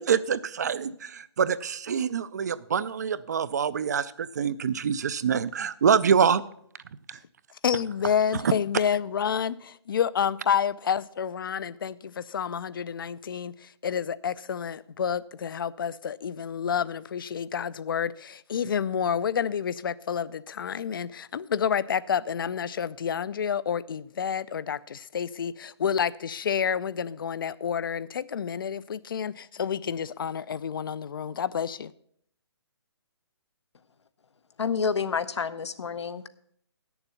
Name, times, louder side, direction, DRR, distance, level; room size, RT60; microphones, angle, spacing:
voice 1, 0.0-6.4 7.1-7.2 8.4-8.5, right 7 dB, 40° right, 0.4 m, -25 dB
voice 2, 7.6-31.9, left 7 dB, 50° left, 0.4 m, -29 dB
voice 3, 34.6-36.3, left 6 dB, 85° left, 0.8 m, -29 dB
8.9 x 7.0 x 6.9 m
hypercardioid pair, 165°, 14 cm